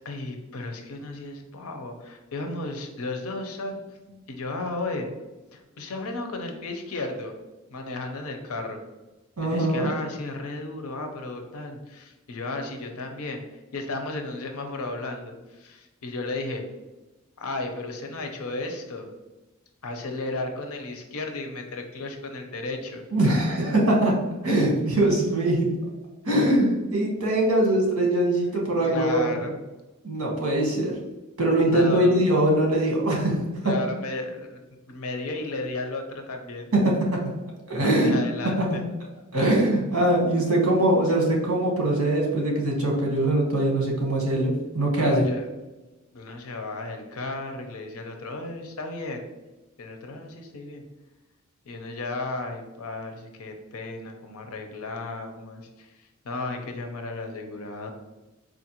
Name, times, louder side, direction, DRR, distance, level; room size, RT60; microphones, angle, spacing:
voice 1, 0.0-3.8 4.3-5.1 5.5-7.3 7.7-8.8 9.4-13.4 13.7-16.6 17.4-19.1 19.8-23.0 26.3-26.4 28.8-29.6 31.6-32.2 33.6-34.6 34.9-36.7 37.8-38.8 45.0-45.4 46.1-49.2 49.8-50.8 51.7-57.9, left 2 dB, 85° left, 4 dB, 0.6 m, -34 dB
voice 2, 9.4-9.9 23.1-24.2 24.4-25.7 26.2-29.2 30.0-30.9 31.4-33.4 33.6-33.7 36.7-37.3 37.7-38.1 38.7-38.8 39.3-45.2, right 1 dB, 75° right, -1 dB, 1.1 m, -22 dB
4.2 x 2.5 x 2.9 m, 1.1 s
head